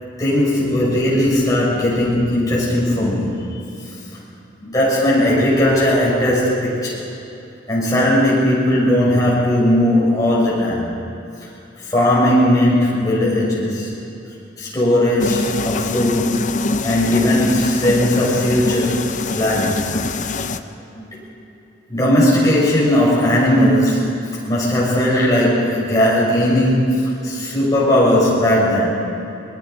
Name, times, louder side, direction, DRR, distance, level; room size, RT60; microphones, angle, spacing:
voice 1, 0.2-3.4 4.6-7.1 7.7-10.9 11.9-14.0 14.6-19.1 19.3-19.8 20.9-21.2 21.9-24.2 24.5-28.9, left 1 dB, 20° left, -6 dB, 6.5 m, -17 dB
sound 1, 15.2-20.6, left 3 dB, 45° left, 0.7 m, -24 dB
25.0 x 20.5 x 5.3 m, 2.8 s
head